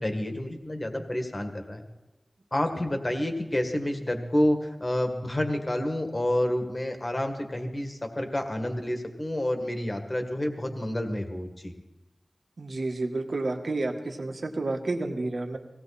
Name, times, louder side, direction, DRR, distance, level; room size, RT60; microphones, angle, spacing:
voice 1, 0.0-1.8 2.5-11.7, left 1 dB, 30° left, 5 dB, 2.0 m, -29 dB
voice 2, 12.6-15.6, right 2 dB, 65° right, 4 dB, 1.7 m, -30 dB
18.5 x 17.0 x 4.3 m, 1.1 s
wide cardioid pair, 75°, 0 cm